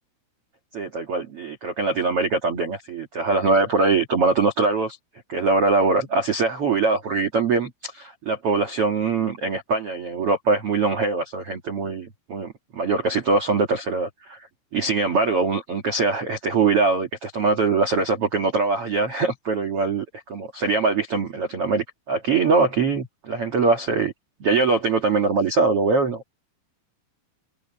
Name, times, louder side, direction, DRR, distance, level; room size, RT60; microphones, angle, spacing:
voice 1, 0.7-5.0 5.3-24.1 24.4-26.2, right 3 dB, 90° right, 1.2 m, -22 dB
omnidirectional pair, 5.8 m